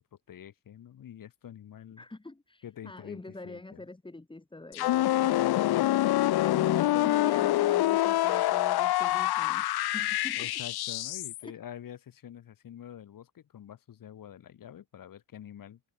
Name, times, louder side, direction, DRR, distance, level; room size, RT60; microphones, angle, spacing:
voice 1, 0.3-2.0 2.6-3.8 10.3-15.8, left 10 dB, 65° left, 3.1 m, -46 dB
voice 2, 2.0-5.5 6.4-10.5 11.4-11.5, left 2 dB, 15° left, 6.6 m, -44 dB
sound 1, 4.7-11.4, left 15 dB, 85° left, 1.1 m, -26 dB
cardioid pair, 125°, 37 cm